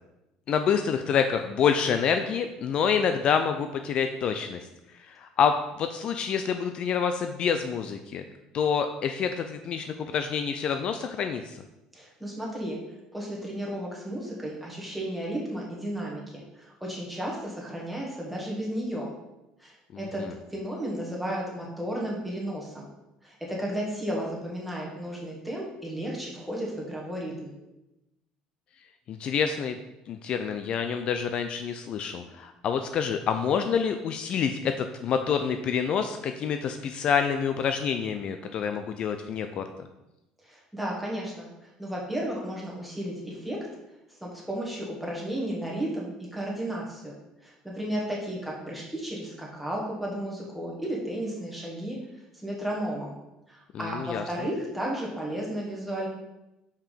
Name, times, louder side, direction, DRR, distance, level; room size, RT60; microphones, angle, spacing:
voice 1, 0.5-4.7 5.0-8.2 8.5-11.6 19.9-20.3 29.1-29.8 30.1-39.7 53.7-54.2, left 7 dB, 45° left, 7 dB, 0.4 m, -27 dB
voice 2, 11.9-12.8 13.1-19.1 19.6-20.2 20.5-22.9 23.2-27.5 40.4-43.6 44.1-47.2 47.4-52.0 52.4-53.2 53.5-56.1, right 1 dB, ahead, -3 dB, 1.9 m, -33 dB
5.7 x 4.7 x 5.1 m, 0.95 s
cardioid pair, 125°, 2 cm